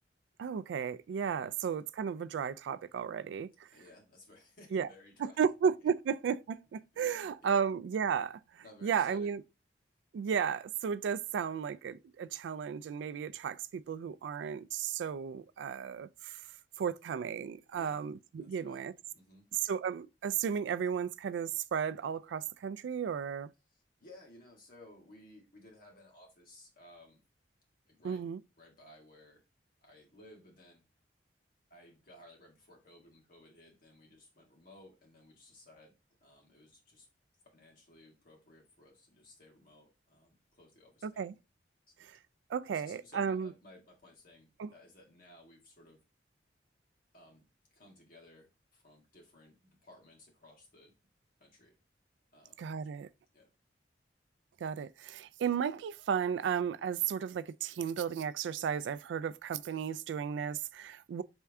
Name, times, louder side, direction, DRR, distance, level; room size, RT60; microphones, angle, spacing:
voice 1, 0.4-3.7 4.7-4.9 5.2-9.4 10.1-16.4 16.8-18.9 19.6-23.5 28.0-28.4 41.0-41.3 42.0-42.2 42.5-43.5 44.6-44.7 52.6-53.1 54.6-61.2, right 7 dB, 85° right, 0.3 m, -34 dB
voice 2, 3.7-5.5 5.8-5.9 6.9-7.7 8.6-9.3 17.7-18.1 18.4-18.8 19.1-19.5 23.7-27.2 27.9-28.2 28.6-29.4 29.8-30.8 31.7-35.9 36.2-37.1 37.4-41.3 42.7-46.0 47.1-47.4 47.7-48.5 48.7-50.9 51.4-51.7 52.3-53.0 53.3-53.5, left 1 dB, 55° left, 1.9 m, -58 dB
4.4 x 3.5 x 3.4 m
head